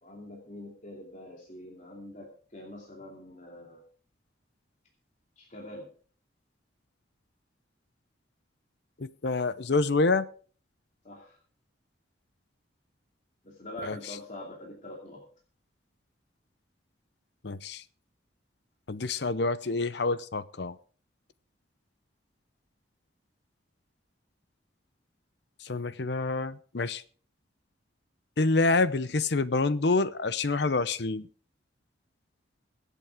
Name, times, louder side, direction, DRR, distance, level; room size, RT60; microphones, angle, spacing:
voice 1, 0.0-3.8 5.4-5.9 11.0-11.4 13.4-15.2, left 1 dB, 40° left, -1 dB, 2.7 m, -44 dB
voice 2, 9.0-10.3 13.8-14.0 17.4-17.8 18.9-20.8 25.6-27.0 28.4-31.3, left 3 dB, 65° left, 16 dB, 0.7 m, -27 dB
23.0 x 8.4 x 3.6 m, 0.42 s
head